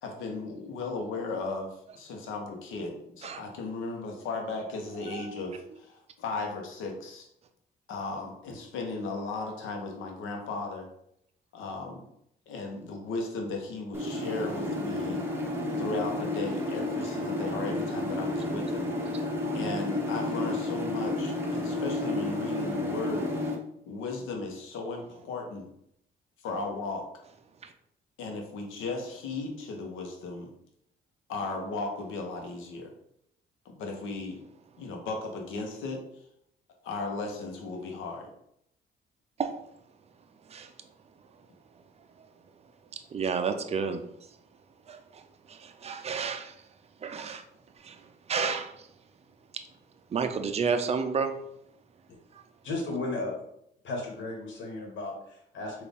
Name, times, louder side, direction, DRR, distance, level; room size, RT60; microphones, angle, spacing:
voice 1, 0.0-7.3 7.9-10.9 11.5-12.0 12.5-15.3 15.8-18.9 19.5-23.3 23.9-25.7 26.4-27.0 28.2-30.5 31.3-32.9 33.6-34.4 34.8-36.0 36.8-38.3, left 3 dB, 90° left, 2 dB, 0.8 m, -36 dB
voice 2, 5.0-5.6 19.1-19.2 23.2-23.3 27.6-27.7 39.4-39.5 40.5-40.7 43.1-44.0 44.9-46.6 47.0-47.4 47.8-48.9 50.1-51.3 52.3-52.4, right 5 dB, 30° right, 7 dB, 0.4 m, -32 dB
sound 1, 13.9-23.5, left 1 dB, 10° right, 0.9 m, -31 dB
voice 3, 52.6-53.4 53.8-55.8, left 2 dB, 70° left, 0 dB, 1.3 m, -34 dB
4.0 x 2.5 x 3.4 m, 0.74 s
cardioid pair, 90°, 20 cm